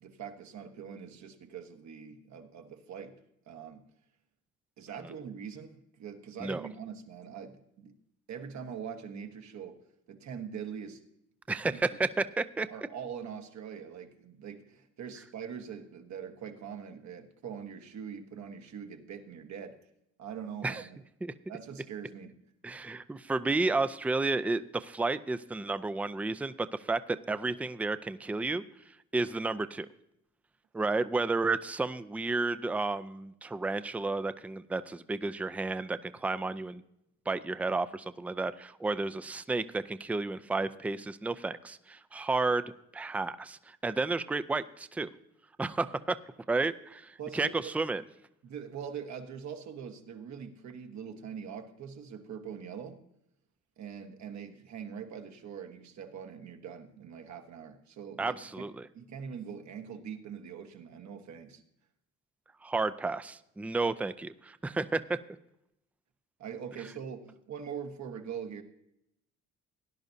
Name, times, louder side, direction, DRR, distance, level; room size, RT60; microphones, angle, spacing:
voice 1, 0.0-3.2 3.5-3.8 4.8-7.9 8.3-9.8 10.1-11.0 11.5-12.0 12.7-19.8 20.2-21.0 21.5-22.4 47.2-47.7 48.4-53.0 53.8-58.6 58.9-61.6 66.4-68.6, right 7 dB, 65° right, 6 dB, 1.3 m, -43 dB
voice 2, 11.5-12.7 20.6-20.8 21.2-21.3 22.6-28.6 29.1-29.9 30.7-36.8 37.3-45.1 45.6-46.2 46.5-48.0 58.2-58.9 62.6-65.0, right 3 dB, 5° right, 13 dB, 0.4 m, -32 dB
17.5 x 10.5 x 2.7 m, 0.79 s
cardioid pair, 90°, 30 cm